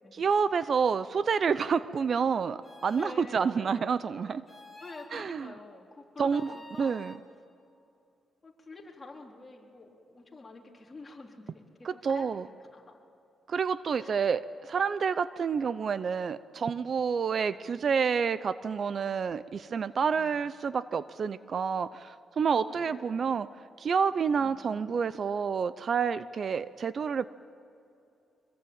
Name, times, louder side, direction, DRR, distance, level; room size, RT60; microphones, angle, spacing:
voice 1, 0.1-4.4 5.1-5.5 6.2-7.1 11.9-12.4 13.5-23.5 23.8-27.2, right 6 dB, 50° right, 15 dB, 0.6 m, -29 dB
sound 1, 2.6-3.1 4.5-5.1 6.3-7.2, left 2 dB, ahead, 3.2 m, -49 dB
voice 2, 2.9-4.1 4.8-7.0 8.4-13.0 14.0-14.2 17.5-17.8 20.1-20.5 22.5-23.4 24.4-24.7, left 3 dB, 25° left, -1 dB, 3.8 m, -48 dB
25.0 x 22.0 x 8.8 m, 2.6 s
cardioid pair, 110°, 0 cm